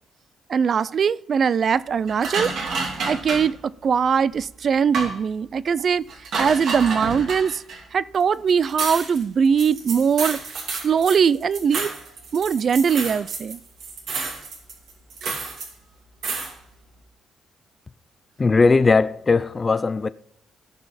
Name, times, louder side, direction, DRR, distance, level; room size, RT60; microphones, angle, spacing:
voice 1, 0.5-2.5 3.1-6.1 6.4-7.6 7.9-10.4 10.7-11.9 12.3-13.6, right 6 dB, 50° right, 0.4 m, -21 dB
sound 1, 2.1-3.5 4.3-4.4 4.9-5.2 6.1-7.8 8.2-8.3 8.5-13.5 13.8-15.7 16.2-16.5, right 4 dB, 70° right, 2.4 m, -30 dB
voice 2, 18.4-20.1, left 4 dB, 30° left, 0.5 m, -18 dB
16.0 x 5.7 x 4.2 m
cardioid pair, 90°, 0 cm